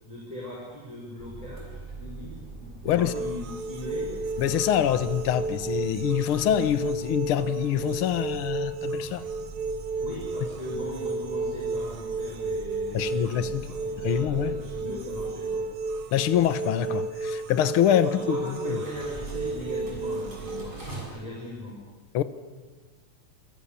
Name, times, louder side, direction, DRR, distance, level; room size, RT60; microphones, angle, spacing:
voice 1, 0.0-4.1 10.0-15.7 18.0-21.8, left 1 dB, 10° left, -4 dB, 6.0 m, -39 dB
sound 1, 1.2-21.0, right 3 dB, 15° right, 7.0 m, -43 dB
voice 2, 2.8-3.2 4.4-9.2 12.9-14.6 16.1-18.8 22.1-22.2, left 10 dB, 55° left, 12 dB, 1.7 m, -25 dB
sound 2, 3.0-20.6, right 3 dB, 50° right, 2.0 m, -33 dB
28.5 x 26.0 x 7.1 m, 1.4 s
omnidirectional pair, 3.4 m